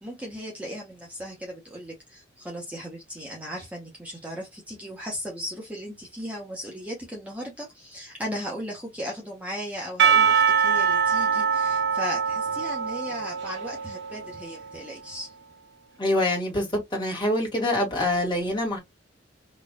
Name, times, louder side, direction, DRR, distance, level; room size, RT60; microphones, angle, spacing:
voice 1, 0.0-15.3, equal, 5° right, 1.0 m, -36 dB
Percussion / Church bell, 10.0-14.8, right 7 dB, 60° right, 0.6 m, -23 dB
voice 2, 16.0-18.8, left 1 dB, 25° left, 1.9 m, -25 dB
4.0 x 3.1 x 2.3 m
head